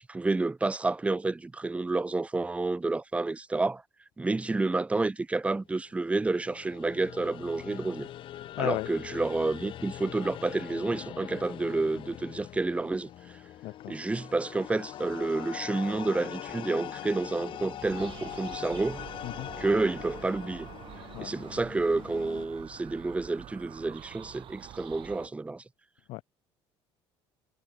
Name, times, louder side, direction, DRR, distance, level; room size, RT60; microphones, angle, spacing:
voice 1, 0.0-3.8 4.2-8.1 8.6-13.1 13.9-19.1 19.6-20.7 21.2-25.6, right 3 dB, 10° right, 0.9 m, -29 dB
sound 1, 6.0-22.5, left 12 dB, 50° left, 1.2 m, -42 dB
voice 2, 8.5-8.9 13.6-14.0 19.2-19.5 21.1-21.3 26.1-26.2, left 20 dB, 70° left, 0.9 m, -34 dB
sound 2, 17.8-25.3, right 12 dB, 50° right, 2.7 m, -46 dB
cardioid pair, 120°, 11 cm